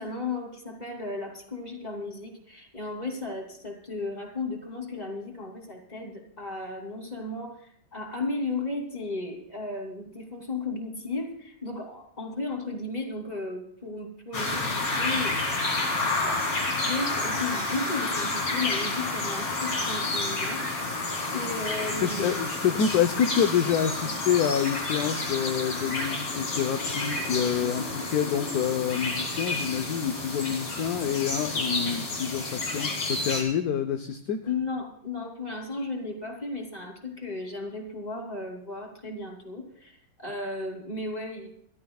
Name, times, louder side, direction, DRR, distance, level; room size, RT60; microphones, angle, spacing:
voice 1, 0.0-15.4 16.1-16.3 16.7-22.7 34.5-41.5, left 3 dB, 20° left, 2 dB, 3.0 m, -35 dB
sound 1, 14.3-33.4, left 2 dB, 90° left, 4.1 m, -30 dB
voice 2, 22.0-34.4, left 8 dB, 60° left, 7 dB, 1.2 m, -27 dB
27.5 x 13.0 x 2.4 m, 0.67 s
omnidirectional pair, 2.2 m